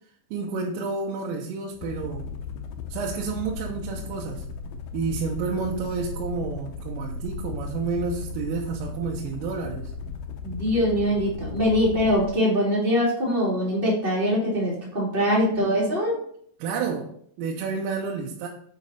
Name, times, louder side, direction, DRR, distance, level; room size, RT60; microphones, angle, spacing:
voice 1, 0.3-2.3 2.9-4.4 4.9-9.9 16.6-18.5, right 4 dB, 80° right, -1 dB, 3.4 m, -30 dB
sound 1, 1.7-12.4, left 4 dB, 85° left, 2.4 m, -36 dB
voice 2, 10.4-16.2, equal, 30° right, -5 dB, 0.9 m, -23 dB
8.1 x 5.1 x 4.2 m, 0.63 s
omnidirectional pair, 5.9 m